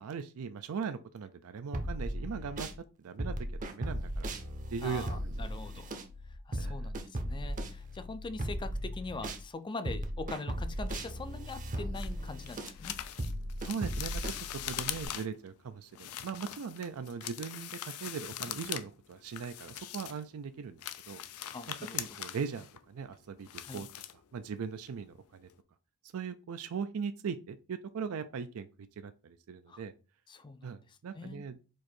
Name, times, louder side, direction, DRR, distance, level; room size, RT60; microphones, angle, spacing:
voice 1, 0.0-2.7 3.0-4.3 4.7-5.5 6.6-6.9 13.6-20.8 21.1-21.2 21.9-23.9 24.3-25.5 26.1-28.7 29.0-29.9 30.6-31.6, right 6 dB, 70° right, 10 dB, 0.4 m, -39 dB
sound 1, 1.7-2.8 3.2-9.4 9.9-15.1, equal, 35° right, 0.7 m, -37 dB
voice 2, 4.8-5.9 6.5-13.0 21.5-22.1 23.6-23.8 29.7-29.8 30.3-30.7 31.1-31.4, left 3 dB, 20° left, 11 dB, 0.4 m, -42 dB
sound 2, 11.9-15.5 15.9-18.9 19.1-20.3 20.7-24.6 24.9-25.1 25.5-25.6, left 11 dB, 80° left, 0.4 m, -42 dB
4.7 x 2.6 x 4.3 m, 0.32 s
head